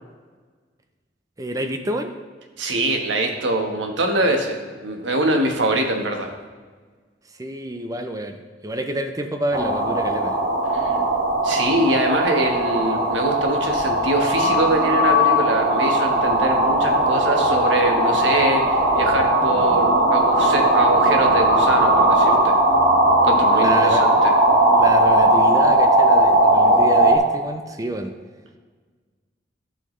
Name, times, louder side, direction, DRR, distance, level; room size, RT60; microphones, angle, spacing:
voice 1, 1.4-2.1 7.4-10.4 23.5-24.0 24.7-28.1, right 1 dB, 20° right, 6 dB, 0.5 m, -28 dB
voice 2, 2.6-6.3 10.7-10.9 11.4-22.6 23.2-24.3, right 1 dB, 85° right, 3 dB, 1.3 m, -23 dB
sound 1, 9.5-27.2, right 1 dB, 55° right, 2.0 m, -18 dB
14.5 x 5.7 x 3.2 m, 1.5 s
head